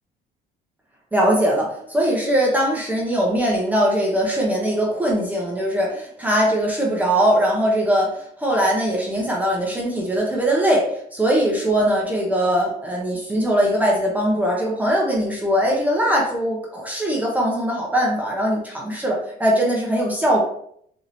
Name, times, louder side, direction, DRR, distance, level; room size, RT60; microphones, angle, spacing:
voice 1, 1.1-20.4, equal, 10° right, -2 dB, 0.8 m, -21 dB
4.0 x 2.8 x 3.0 m, 0.66 s
cardioid pair, 110°, 17 cm